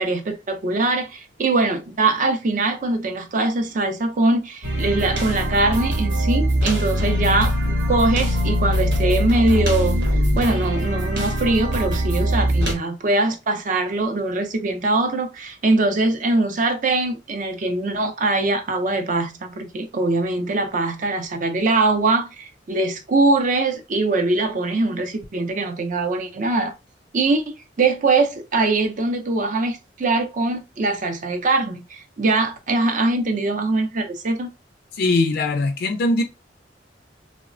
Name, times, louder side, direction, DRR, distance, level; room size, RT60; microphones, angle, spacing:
voice 1, 0.0-26.7 27.1-27.4 27.8-34.5, right 2 dB, 45° right, 0.5 m, -22 dB
sound 1, 4.6-12.7, equal, 75° right, 0.9 m, -22 dB
voice 2, 35.0-36.2, left 2 dB, 60° left, 0.3 m, -20 dB
3.0 x 2.0 x 2.4 m
head